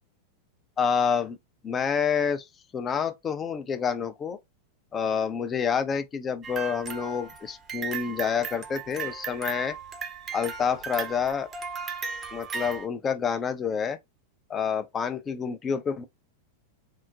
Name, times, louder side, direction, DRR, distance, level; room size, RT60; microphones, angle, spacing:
voice 1, 0.8-1.4 1.6-2.5 2.7-4.4 4.9-9.8 10.3-11.5 12.3-14.0 14.5-16.0, left 6 dB, 25° left, 0.4 m, -28 dB
sound 1, 6.4-12.9, right 6 dB, 25° right, 0.6 m, -36 dB
3.7 x 2.1 x 2.4 m
figure-of-eight pair, 90°, 0 cm